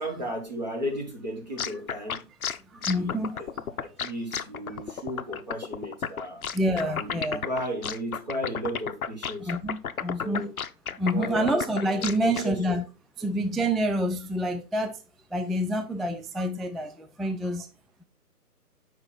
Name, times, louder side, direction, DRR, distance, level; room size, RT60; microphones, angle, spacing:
voice 1, 0.0-2.2 2.7-3.5 3.8-6.4 6.8-9.5 10.2-10.6 11.1-12.6, equal, 25° right, 1.1 m, -35 dB
sound 1, 1.6-12.5, left 7 dB, 65° left, 0.6 m, -32 dB
voice 2, 2.7-3.7 4.7-4.9 6.5-7.5 9.4-10.5 10.9-12.8 13.2-15.0 15.3-17.7, equal, ahead, 0.3 m, -28 dB
5.9 x 4.8 x 3.9 m
hypercardioid pair, 170°, 47 cm